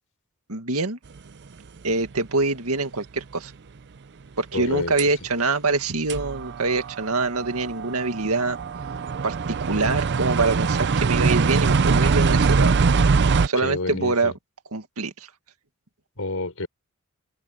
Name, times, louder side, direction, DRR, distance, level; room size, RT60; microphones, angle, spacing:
voice 1, 0.5-1.0 1.8-3.5 4.4-8.6 9.2-12.8 13.4-14.3 14.7-15.1, right 3 dB, 85° right, 2.0 m, -25 dB
sound 1, 2.2-2.3 5.0-5.1 5.7-5.8 6.1-13.5, right 4 dB, 55° right, 0.5 m, -22 dB
voice 2, 4.5-4.9 13.6-14.3 16.2-16.7, left 2 dB, 70° left, 5.1 m, -29 dB
head